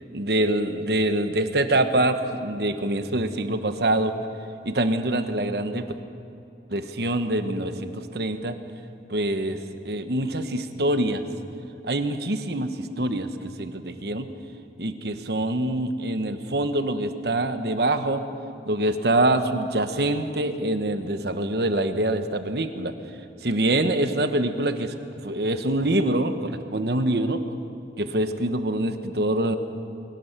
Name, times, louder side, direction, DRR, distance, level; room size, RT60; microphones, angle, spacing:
voice 1, 0.1-4.1 4.6-5.8 6.7-8.5 9.1-9.6 9.8-11.2 11.8-14.3 14.8-18.2 18.7-22.9 23.4-24.9 25.2-27.4 28.0-29.6, right 1 dB, 65° right, 9 dB, 1.2 m, -25 dB
23.0 x 17.0 x 6.8 m, 2.7 s
head